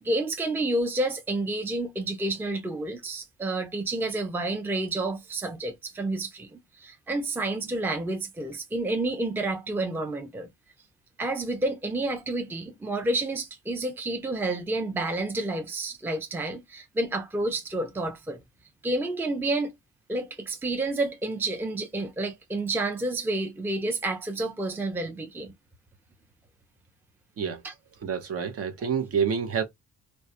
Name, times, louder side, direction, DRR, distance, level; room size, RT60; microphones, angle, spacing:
voice 1, 0.0-10.5 11.2-18.4 18.8-19.7 20.1-25.5 27.6-27.7, right 2 dB, 5° right, 0.4 m, -29 dB
voice 2, 28.0-29.6, right 6 dB, 50° right, 0.6 m, -28 dB
2.2 x 2.1 x 2.6 m
cardioid pair, 90°, 30 cm